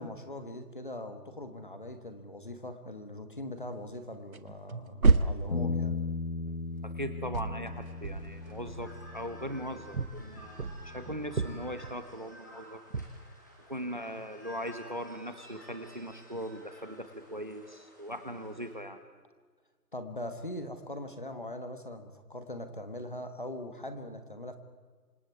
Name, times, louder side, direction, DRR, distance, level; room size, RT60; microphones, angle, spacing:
voice 1, 0.0-5.9 19.9-24.6, left 1 dB, 30° left, 8 dB, 1.5 m, -41 dB
sound 1, 3.9-4.1 4.3-7.0 7.3-9.4 9.9-12.3 12.9-13.2, right 3 dB, 55° right, 1.4 m, -31 dB
Bass guitar, 5.5-11.8, left 4 dB, 50° left, 1.6 m, -38 dB
voice 2, 6.8-12.8 13.7-19.0, equal, 30° right, 10 dB, 1.1 m, -39 dB
sound 2, 7.6-18.7, equal, 10° left, 1.7 m, -54 dB
29.0 x 26.0 x 4.8 m, 1.5 s
figure-of-eight pair, 180°, 49 cm